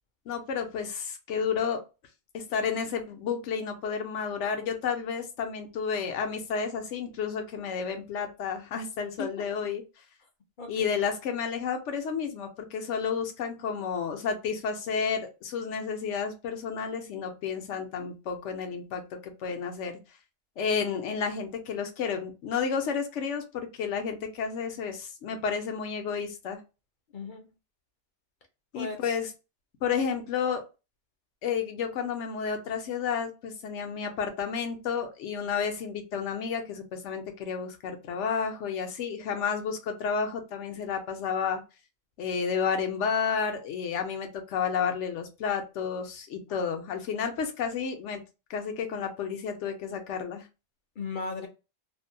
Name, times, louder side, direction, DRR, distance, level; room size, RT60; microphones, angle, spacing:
voice 1, 0.3-1.8 2.3-9.8 10.7-20.0 20.6-26.6 28.7-29.3 29.8-30.6 31.4-41.6 42.2-48.2 48.5-50.4, left 6 dB, 80° left, 1.0 m, -31 dB
voice 2, 10.6-10.9 27.1-27.5 28.7-29.1 46.5-46.7 51.0-51.5, left 4 dB, 55° left, 0.6 m, -37 dB
2.6 x 2.1 x 2.5 m
omnidirectional pair, 1.2 m